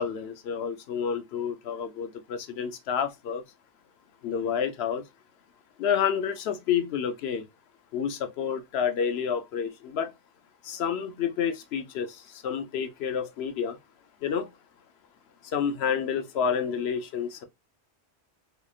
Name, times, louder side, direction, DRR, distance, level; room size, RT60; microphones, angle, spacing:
voice 1, 0.0-3.4 4.2-5.0 5.8-7.4 7.9-10.1 10.6-13.8 14.2-14.5 15.4-17.4, left 7 dB, 70° left, 0.9 m, -29 dB
3.6 x 3.2 x 2.3 m
omnidirectional pair, 1.1 m